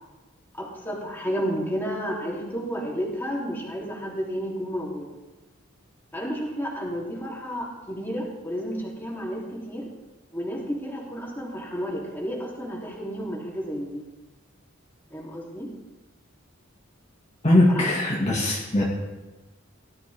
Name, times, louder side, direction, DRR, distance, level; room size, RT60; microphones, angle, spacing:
voice 1, 0.5-5.1 6.1-9.9 10.3-14.0 15.1-15.7 17.7-17.9, equal, 10° left, -4 dB, 3.5 m, -31 dB
voice 2, 17.4-18.8, left 1 dB, 35° left, -4 dB, 2.1 m, -20 dB
18.5 x 13.0 x 3.7 m, 1.1 s
head